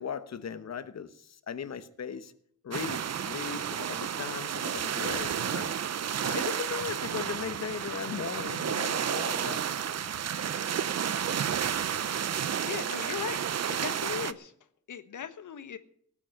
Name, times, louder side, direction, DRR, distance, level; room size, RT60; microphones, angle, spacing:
voice 1, 0.0-2.3 2.6-5.7 6.2-9.7, left 7 dB, 60° left, 1.2 m, -38 dB
sound 1, 2.7-14.3, right 8 dB, 60° right, 0.7 m, -31 dB
voice 2, 12.7-13.4 13.7-14.5 14.9-15.8, left 8 dB, 85° left, 1.3 m, -37 dB
18.0 x 8.6 x 7.4 m
wide cardioid pair, 125°, 30 cm